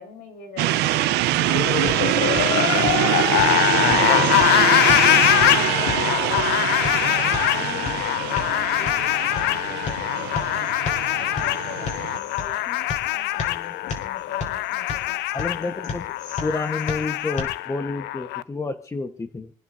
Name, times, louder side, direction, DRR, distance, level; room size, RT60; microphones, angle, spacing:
voice 1, 0.0-1.5 2.0-3.1 3.7-5.0 5.6-10.6 11.2-15.2 15.6-15.9, left 6 dB, 70° left, 4 dB, 5.5 m, -41 dB
sound 1, 0.6-12.2, right 15 dB, 85° right, 0.7 m, -24 dB
sound 2, 1.4-18.4, left 16 dB, 85° left, 0.5 m, -23 dB
sound 3, 1.4-17.4, left 4 dB, 50° left, 5.4 m, -36 dB
voice 2, 3.8-4.3 15.3-16.1 16.4-19.5, left 3 dB, 20° left, 7 dB, 1.2 m, -29 dB
27.0 x 10.5 x 2.7 m, 0.39 s
cardioid pair, 110°, 17 cm